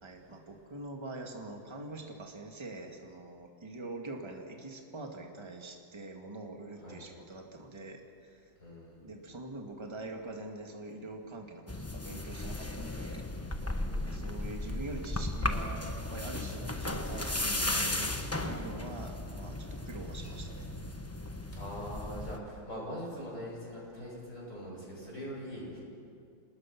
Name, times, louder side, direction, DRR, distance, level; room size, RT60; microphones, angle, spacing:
voice 1, 0.0-8.4 9.0-13.2 14.0-18.1 18.4-20.7, right 2 dB, 15° right, 2 dB, 2.0 m, -44 dB
voice 2, 8.6-9.0 13.9-14.4 21.5-25.8, equal, 45° left, -4 dB, 8.1 m, -42 dB
sound 1, 11.7-22.4, left 1 dB, 10° left, 0.7 m, -35 dB
28.0 x 19.5 x 6.0 m, 2.4 s
omnidirectional pair, 2.0 m